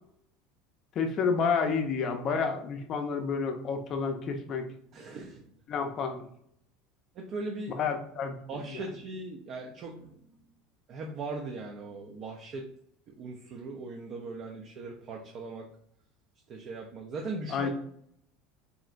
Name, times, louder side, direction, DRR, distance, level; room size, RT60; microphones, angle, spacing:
voice 1, 1.0-4.7 5.7-6.3 7.8-8.4 8.7-8.8 17.5-17.7, left 5 dB, 40° left, 5 dB, 0.5 m, -30 dB
voice 2, 4.9-5.4 7.1-7.9 8.5-10.4 10.9-12.7 13.1-15.7 16.5-17.7, right 3 dB, 45° right, 1 dB, 0.4 m, -39 dB
3.6 x 2.1 x 2.4 m, 0.69 s
supercardioid pair, 135°, 0 cm